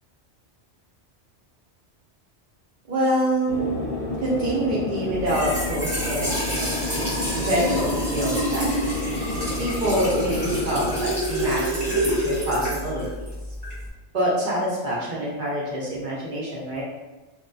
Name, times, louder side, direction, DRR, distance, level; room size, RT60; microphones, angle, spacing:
voice 1, 2.9-3.7 4.2-7.0 7.4-8.7 9.6-13.1 14.1-16.8, right 1 dB, 50° right, -6 dB, 0.7 m, -26 dB
sound 1, 3.5-11.0, left 1 dB, 50° left, 0.7 m, -31 dB
Trickle dribble / Fill (with liquid), 5.1-13.9, equal, 35° right, 1.1 m, -28 dB
2.6 x 2.1 x 2.3 m, 1.1 s
omnidirectional pair, 1.2 m